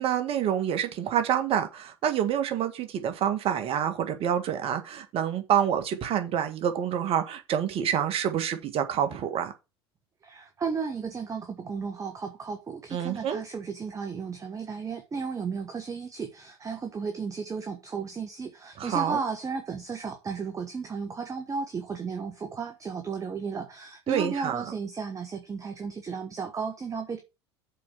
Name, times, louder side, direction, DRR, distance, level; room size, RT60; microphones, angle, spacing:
voice 1, 0.0-9.5 12.9-13.4 18.8-19.2 24.1-24.6, right 9 dB, 45° right, 1.8 m, -27 dB
voice 2, 10.2-27.2, right 5 dB, 25° right, 1.3 m, -34 dB
6.9 x 4.6 x 6.2 m
figure-of-eight pair, 70°, 14 cm